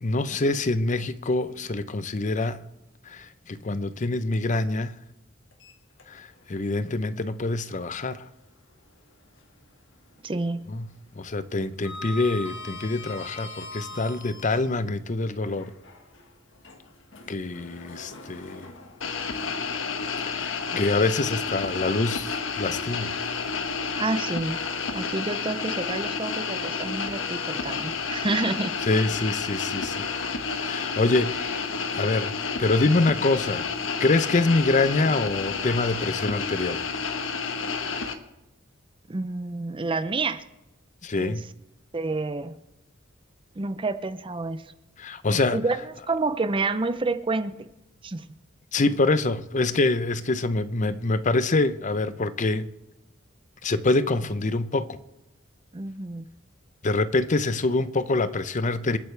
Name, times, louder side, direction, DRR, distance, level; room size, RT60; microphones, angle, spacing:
voice 1, 0.0-2.6 3.1-4.9 6.1-8.2 10.7-10.9 11.2-15.7 17.3-18.7 20.1-23.2 28.9-30.1 30.5-33.7 34.0-36.8 41.0-41.4 45.0-45.6 48.7-52.7 53.6-55.0 56.8-59.0, left 2 dB, 40° left, 0.7 m, -25 dB
Sliding door, 5.5-6.5 6.9-7.0 8.7-9.7 10.0-10.4 10.6-14.7 15.4-20.6, left 2 dB, 65° left, 1.6 m, -43 dB
voice 2, 10.2-10.6 23.9-24.6 24.9-28.7 39.1-40.4 41.2-41.4 41.9-42.5 43.6-44.7 45.3-47.6 48.0-48.2 55.7-56.3, right 3 dB, 25° right, 0.6 m, -29 dB
sound 1, 19.0-38.1, left 5 dB, 85° left, 1.1 m, -30 dB
27.0 x 9.3 x 3.3 m
head